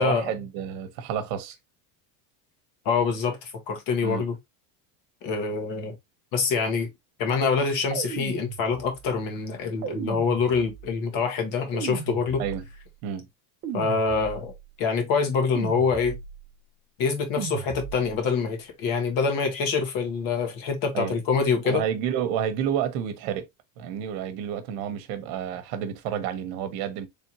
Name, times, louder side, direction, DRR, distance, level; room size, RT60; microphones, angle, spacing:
voice 1, 0.0-1.5 4.0-4.2 12.4-12.6 13.0-13.3 20.9-21.2 21.6-23.5 23.8-27.1, right 9 dB, 65° right, 1.1 m, -29 dB
voice 2, 2.8-4.3 5.2-5.9 6.3-6.9 7.2-12.4 13.7-14.5 14.8-16.2 17.0-21.8, left 5 dB, 45° left, 1.5 m, -25 dB
sound 1, 7.9-9.1 9.8-11.0 11.7-12.9 13.6-14.7 15.6-16.5 17.4-18.3, right 8 dB, 30° right, 0.7 m, -36 dB
4.3 x 3.5 x 2.9 m
cardioid pair, 180°, 47 cm